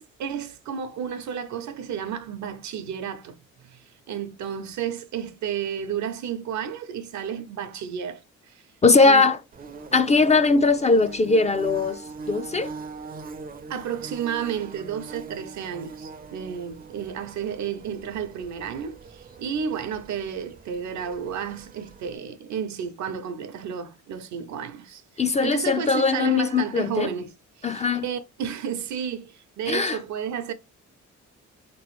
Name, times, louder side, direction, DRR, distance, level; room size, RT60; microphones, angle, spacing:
voice 1, 0.0-8.2 8.5-8.6 9.0-9.3 13.7-27.3 27.6-30.5, right 8 dB, 70° right, 0.7 m, -32 dB
voice 2, 8.8-9.4 9.9-12.0 12.3-12.7 25.2-27.1 27.6-28.1 29.7-30.0, left 3 dB, 25° left, 0.4 m, -20 dB
Bird / Buzz, 9.5-22.1, right 4 dB, 30° right, 0.5 m, -42 dB
3.7 x 3.0 x 3.0 m
cardioid pair, 90°, 30 cm